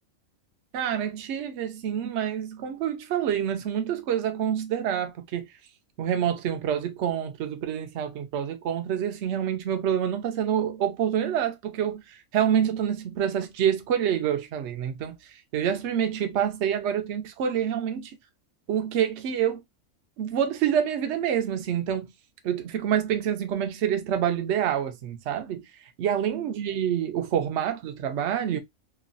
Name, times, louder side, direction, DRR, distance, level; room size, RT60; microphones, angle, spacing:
voice 1, 0.7-5.5 6.0-15.2 15.5-18.1 18.7-19.6 20.2-22.1 22.4-25.6 26.0-28.6, right 9 dB, 65° right, 0.9 m, -27 dB
3.0 x 2.3 x 2.4 m
omnidirectional pair, 1.4 m